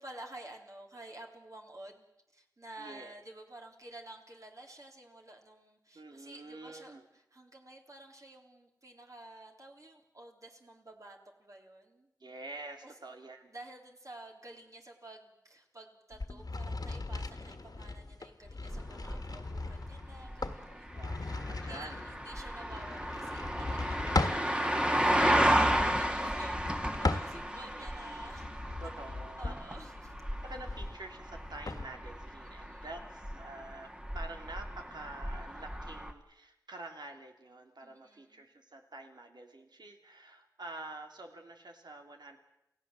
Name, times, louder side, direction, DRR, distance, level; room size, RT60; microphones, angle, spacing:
voice 1, 0.0-2.1 2.3-6.9 7.3-12.1 12.8-12.9 13.5-24.7 25.0-28.5 28.8-29.0 29.4-30.1 32.6-32.9 37.8-38.4, right 1 dB, 50° right, 1 dB, 3.4 m, -51 dB
voice 2, 2.8-3.2 5.9-7.0 12.2-13.5 21.0-22.1 27.7-28.4 28.8-29.5 30.4-42.4, right 2 dB, 90° right, 4 dB, 3.0 m, -47 dB
sound 1, 16.1-24.5 25.3-27.7 28.2-31.9, left 3 dB, 65° left, 1.7 m, -38 dB
sound 2, 18.7-36.1, equal, 15° right, 1.7 m, -33 dB
28.5 x 16.5 x 7.7 m, 0.84 s
wide cardioid pair, 65°, 7 cm